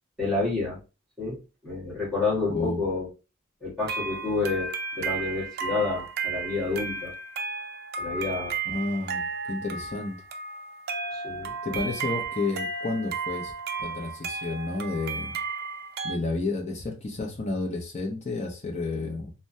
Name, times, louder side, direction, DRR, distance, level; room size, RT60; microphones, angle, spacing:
voice 1, 0.2-0.8 1.2-3.1 3.6-7.1 8.0-8.6 11.1-11.7, left 3 dB, ahead, 1.4 m, -29 dB
voice 2, 2.5-2.8 8.7-10.2 11.6-13.5 13.8-15.4 16.0-19.3, left 3 dB, 35° left, 0.7 m, -31 dB
sound 1, 3.8-16.2, right 4 dB, 50° right, 0.4 m, -34 dB
3.4 x 2.2 x 2.6 m
head